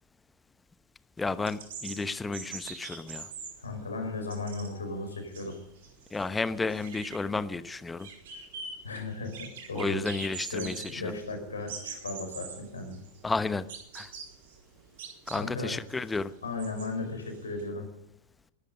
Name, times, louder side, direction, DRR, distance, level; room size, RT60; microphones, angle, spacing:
voice 1, 1.2-3.3 6.1-8.1 9.7-11.1 13.2-13.7 13.9-14.1 15.3-16.3, left 3 dB, 10° left, 14 dB, 1.0 m, -32 dB
sound 1, 1.2-17.6, right 5 dB, 55° right, 4.1 m, -44 dB
voice 2, 3.6-5.6 8.8-10.0 10.5-13.0 15.3-15.8 16.4-17.9, left 3 dB, 75° left, 5 dB, 5.0 m, -36 dB
21.5 x 12.0 x 5.4 m, 0.73 s
figure-of-eight pair, 90°, 0 cm